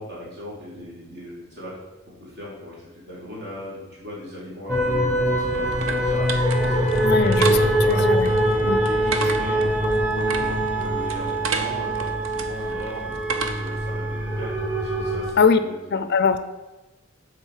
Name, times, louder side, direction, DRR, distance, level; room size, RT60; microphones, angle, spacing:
voice 1, 0.0-1.7 2.2-8.0 8.8-9.7 10.0-16.1, left 1 dB, 50° right, -6 dB, 2.3 m, -38 dB
sound 1, 4.7-15.3, right 1 dB, 5° right, 1.1 m, -23 dB
sound 2, 4.9-13.9, right 4 dB, 65° right, 0.7 m, -33 dB
voice 2, 7.0-7.6 7.9-8.3 8.6-8.8 9.2-9.3 15.4-15.6 15.9-16.4, left 5 dB, 50° left, 11 dB, 0.5 m, -21 dB
7.6 x 3.9 x 6.4 m, 1.1 s
head